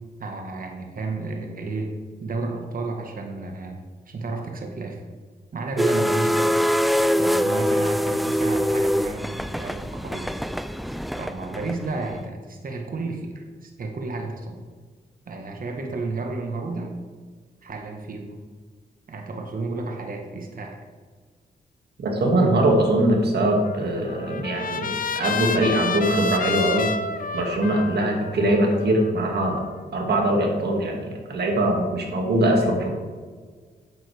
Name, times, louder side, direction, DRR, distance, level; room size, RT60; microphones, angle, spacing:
voice 1, 0.2-1.9 2.2-3.8 4.1-5.0 5.5-6.5 7.2-10.3 11.1-14.6 15.3-16.9 17.6-18.4 19.1-20.8, right 3 dB, 55° right, 2 dB, 1.3 m, -32 dB
sound 1, 5.8-12.1, equal, ahead, 0.4 m, -24 dB
voice 2, 22.0-26.9 27.3-29.6 29.9-33.0, right 1 dB, 70° right, 1 dB, 2.0 m, -22 dB
Trumpet, 23.6-29.8, left 4 dB, 55° left, 0.6 m, -30 dB
9.0 x 8.2 x 3.4 m, 1.5 s
cardioid pair, 55°, 17 cm